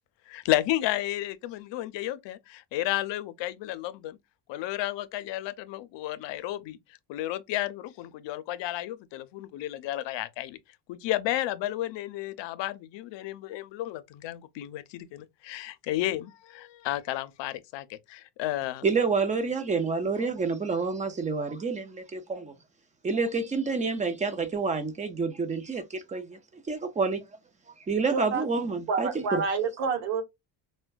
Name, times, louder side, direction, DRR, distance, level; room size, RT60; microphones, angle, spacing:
voice 1, 0.3-4.2 4.5-6.8 7.1-10.6 10.9-18.9, left 14 dB, 70° left, 0.6 m, -32 dB
voice 2, 18.8-22.5 23.0-26.4 26.7-27.2 27.9-29.4, right 4 dB, 20° right, 0.3 m, -28 dB
voice 3, 28.1-28.4 28.9-30.2, right 5 dB, 80° right, 1.0 m, -28 dB
4.3 x 2.2 x 2.2 m
cardioid pair, 150°, 45 cm